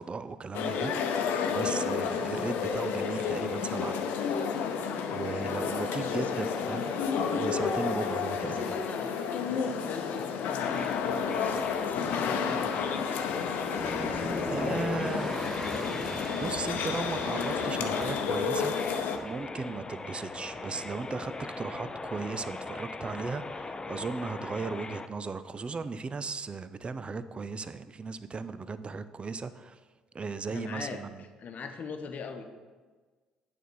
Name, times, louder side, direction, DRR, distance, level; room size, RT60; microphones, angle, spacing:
voice 1, 0.0-4.2 5.1-6.9 7.3-8.7 13.9-14.1 14.5-15.3 16.4-18.7 19.0-29.8 30.1-31.2, right 4 dB, 30° right, 13 dB, 0.5 m, -36 dB
sound 1, 0.5-19.2, left 6 dB, 65° left, 0.7 m, -31 dB
voice 2, 6.2-7.1 8.4-9.1 9.4-13.3 13.8-16.1 30.5-32.4, left 5 dB, 50° left, 6 dB, 1.0 m, -41 dB
sound 2, 10.6-25.1, left 3 dB, 25° left, 0.5 m, -41 dB
sound 3, 13.6-18.7, left 1 dB, 5° left, 1.4 m, -39 dB
9.1 x 4.2 x 6.2 m, 1.4 s
hypercardioid pair, 50°, 3 cm